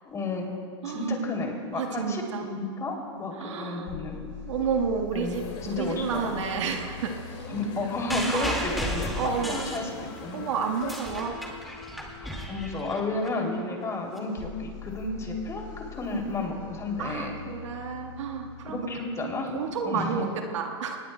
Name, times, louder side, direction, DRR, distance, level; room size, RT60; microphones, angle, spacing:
voice 1, 0.0-0.5 0.8-4.2 5.1-6.5 7.5-10.4 12.2-17.3 18.7-19.6 19.8-20.3, left 2 dB, 20° left, 1 dB, 2.9 m, -32 dB
voice 2, 0.8-1.1 1.7-2.5 3.3-3.9 4.4-7.9 8.3-8.6 9.2-9.6 10.3-11.3 13.7-13.8 17.0-18.8 19.2-21.0, right 6 dB, 75° right, 3 dB, 1.5 m, -31 dB
sound 1, 3.9-19.8, left 6 dB, 75° left, 2.3 m, -44 dB
sound 2, 5.3-10.9, left 6 dB, 55° left, 2.2 m, -44 dB
sound 3, 8.1-10.3 10.7-13.3 14.2-14.3, equal, ahead, 2.0 m, -34 dB
23.5 x 19.5 x 2.2 m, 2.2 s
hypercardioid pair, 120°, 15 cm